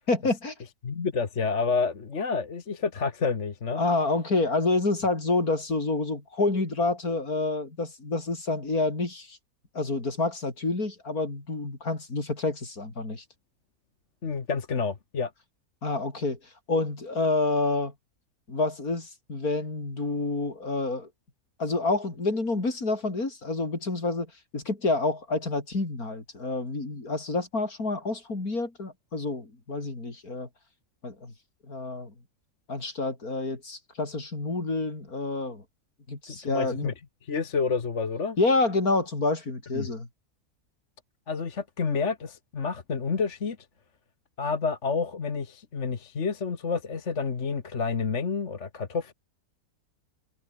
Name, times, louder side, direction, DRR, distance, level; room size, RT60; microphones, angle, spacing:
voice 1, 0.1-0.5 3.7-9.4 9.7-13.2 15.8-17.9 18.5-21.1 21.6-30.5 31.0-31.3 31.7-32.1 32.7-35.6 36.1-36.9 38.4-40.1, left 3 dB, 70° left, 5.1 m, -28 dB
voice 2, 0.8-3.8 14.2-15.3 36.3-36.9 37.2-38.4 39.7-39.9 41.3-43.6 44.4-49.1, left 5 dB, 50° left, 1.9 m, -29 dB
omnidirectional pair, 1.6 m